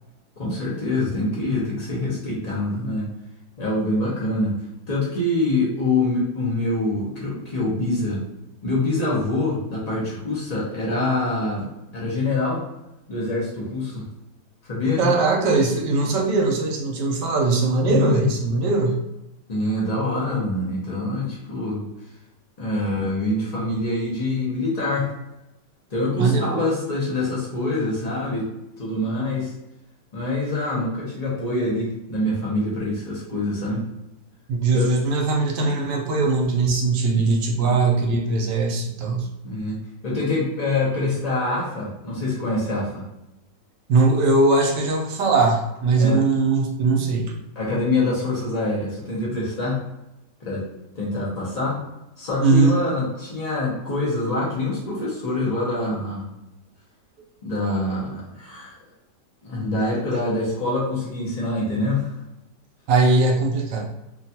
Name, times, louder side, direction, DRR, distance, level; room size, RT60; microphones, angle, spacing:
voice 1, 0.4-3.1 3.6-4.6 4.9-8.2 8.6-11.7 11.9-12.6 13.1-14.0 14.6-15.1 17.9-18.3 19.5-21.8 22.6-25.1 25.9-28.4 28.8-29.5 30.1-33.8 34.7-34.9 37.1-37.3 37.6-37.8 39.4-43.0 46.0-46.2 47.5-49.8 50.4-50.7 50.9-51.8 52.2-56.3 57.4-58.7 59.4-62.2, left 2 dB, 70° left, -6 dB, 0.3 m, -25 dB
voice 2, 15.0-19.0 26.2-26.7 34.5-39.3 43.9-47.4 52.4-52.7 62.9-63.9, right 3 dB, 85° right, 1 dB, 1.2 m, -20 dB
3.0 x 2.3 x 2.7 m, 0.91 s
omnidirectional pair, 1.9 m